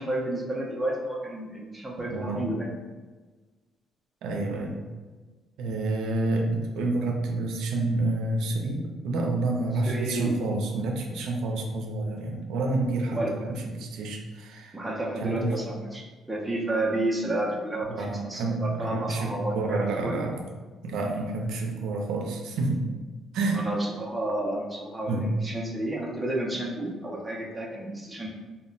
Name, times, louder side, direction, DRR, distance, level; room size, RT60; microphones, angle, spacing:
voice 1, 0.0-2.7 9.9-10.3 13.1-13.4 14.7-20.2 23.5-28.3, right 1 dB, 5° right, -3 dB, 0.5 m, -31 dB
voice 2, 2.1-2.5 4.2-4.8 5.6-14.8 15.2-15.5 17.9-20.4 20.8-22.8 23.3-23.6 25.1-25.3, right 2 dB, 85° right, 1 dB, 0.4 m, -29 dB
2.1 x 2.1 x 3.8 m, 1.3 s
cardioid pair, 130°, 0 cm